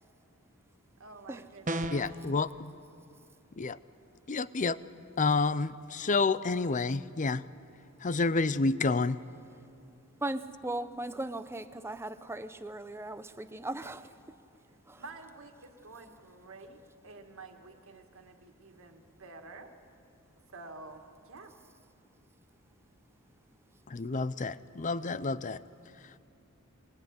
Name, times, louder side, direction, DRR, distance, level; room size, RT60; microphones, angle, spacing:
voice 1, 1.0-2.0 14.9-19.7 20.5-21.5, right 3 dB, 65° right, 5 dB, 2.0 m, -49 dB
sound 1, 1.7-2.2, right 1 dB, 35° right, 1.1 m, -33 dB
voice 2, 1.9-2.8 3.6-3.8 4.3-4.8 5.2-7.4 8.0-9.2 23.9-25.6, left 3 dB, 35° left, 16 dB, 0.6 m, -29 dB
voice 3, 10.2-14.1 14.9-15.0, right 2 dB, 10° right, 11 dB, 0.8 m, -38 dB
22.5 x 21.0 x 9.8 m, 2.5 s
head